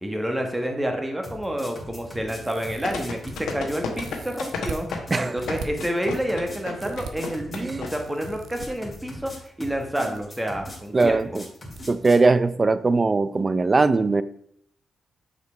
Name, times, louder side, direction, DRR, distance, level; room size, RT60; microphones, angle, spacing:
voice 1, 0.0-4.9 5.2-11.2, equal, 10° right, 3 dB, 1.5 m, -29 dB
sound 1, 1.2-12.3, left 1 dB, 25° left, 2.1 m, -40 dB
sound 2, 2.4-3.3 3.9-4.8 5.4-5.7 6.8-7.1 8.0-8.7 9.8-10.2 10.5-10.6 11.8-11.9 12.2-12.3, right 5 dB, 75° right, 0.9 m, -39 dB
sound 3, 2.8-7.9 8.1-8.2, left 5 dB, 80° left, 1.0 m, -31 dB
voice 2, 7.5-7.9 10.9-11.4 11.9-14.2, right 3 dB, 35° right, 15 dB, 0.4 m, -20 dB
6.5 x 5.0 x 4.6 m, 0.68 s
cardioid pair, 65°, 0 cm